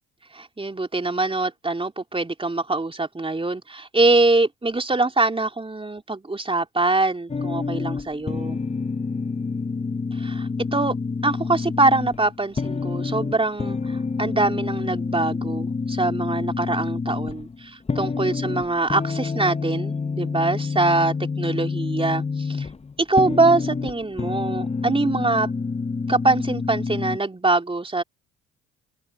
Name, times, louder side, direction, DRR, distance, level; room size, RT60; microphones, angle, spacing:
voice 1, 0.3-8.6 10.1-10.9 11.2-22.7 23.0-25.5 26.1-28.0, right 2 dB, 15° right, 3.4 m, -23 dB
sound 1, 7.3-27.2, left 4 dB, 20° left, 0.8 m, -28 dB
open air
hypercardioid pair, 55°, 32 cm